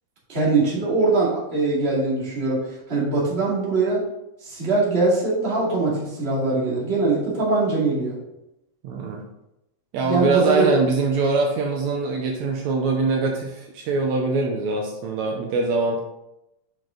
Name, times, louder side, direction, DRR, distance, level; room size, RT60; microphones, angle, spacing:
voice 1, 0.3-2.6 2.9-4.0 4.4-8.2 10.0-10.7, right 3 dB, 20° right, -5 dB, 2.1 m, -22 dB
voice 2, 8.8-9.2 9.9-16.0, right 3 dB, 75° right, 1 dB, 2.0 m, -23 dB
7.0 x 6.1 x 3.8 m, 0.87 s
omnidirectional pair, 3.5 m